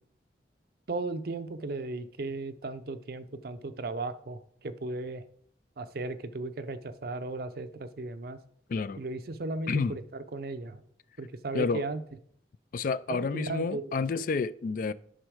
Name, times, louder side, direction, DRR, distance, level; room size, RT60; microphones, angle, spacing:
voice 1, 0.9-5.2 5.8-8.4 9.0-10.8 11.2-12.0 13.1-14.0, right 2 dB, 55° right, 0.6 m, -36 dB
voice 2, 12.7-14.9, left 4 dB, 45° left, 0.3 m, -29 dB
9.1 x 5.5 x 4.9 m
head